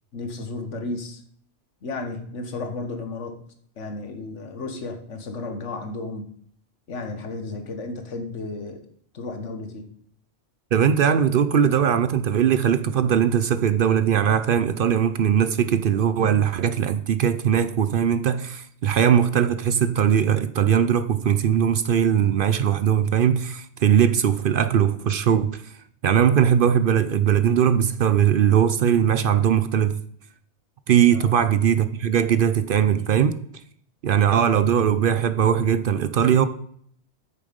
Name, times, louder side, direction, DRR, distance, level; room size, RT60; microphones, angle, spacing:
voice 1, 0.1-1.2 1.8-3.4 3.8-6.3 6.9-8.9 9.1-9.9 31.1-31.3, left 3 dB, 85° left, 1.6 m, -33 dB
voice 2, 10.7-25.7 26.0-30.0 30.9-33.4 34.0-36.5, right 8 dB, 60° right, 0.6 m, -20 dB
8.7 x 6.8 x 5.2 m
omnidirectional pair, 1.2 m